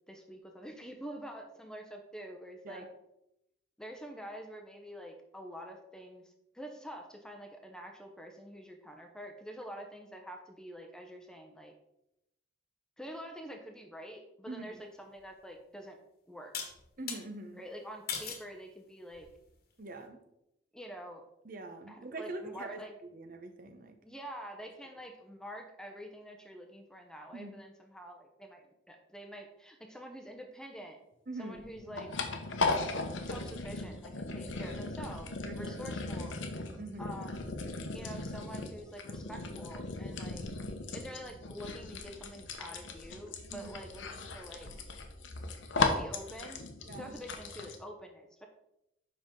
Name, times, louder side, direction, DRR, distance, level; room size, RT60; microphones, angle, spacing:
voice 1, 0.1-2.9 3.8-11.7 13.0-16.0 16.3-16.5 17.6-19.3 20.7-21.2 21.9-22.9 24.0-31.0 31.4-32.1 33.2-36.4 37.0-37.4 37.9-40.4 40.9-44.7 45.8-46.6 47.0-48.5, equal, 5° left, 3 dB, 0.7 m, -46 dB
voice 2, 14.5-14.8 17.0-17.6 19.8-20.2 21.4-24.0 27.3-27.5 31.3-31.6 34.5-34.8 35.4-35.8 36.8-37.2 43.5-43.8 46.9-47.2, right 2 dB, 45° right, 6 dB, 0.7 m, -44 dB
sound 1, 15.2-15.3 16.5-17.2 18.1-18.5 19.1-19.5, left 6 dB, 50° left, 1.3 m, -38 dB
sound 2, 31.5-47.8, left 3 dB, 80° left, 0.9 m, -37 dB
7.6 x 5.6 x 3.7 m, 0.84 s
head